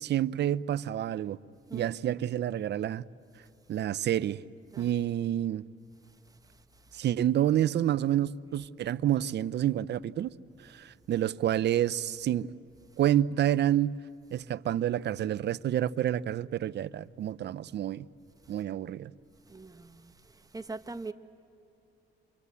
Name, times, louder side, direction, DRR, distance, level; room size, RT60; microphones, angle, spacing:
voice 1, 0.0-1.4 1.7-3.0 3.7-4.4 4.8-5.6 6.9-10.3 10.6-12.5 13.0-14.0 14.3-18.0 18.5-19.1, right 11 dB, 60° right, 0.6 m, -28 dB
voice 2, 19.5-20.1 20.5-21.1, right 3 dB, 20° right, 1.1 m, -41 dB
27.5 x 24.0 x 8.4 m
cardioid pair, 90°, 20 cm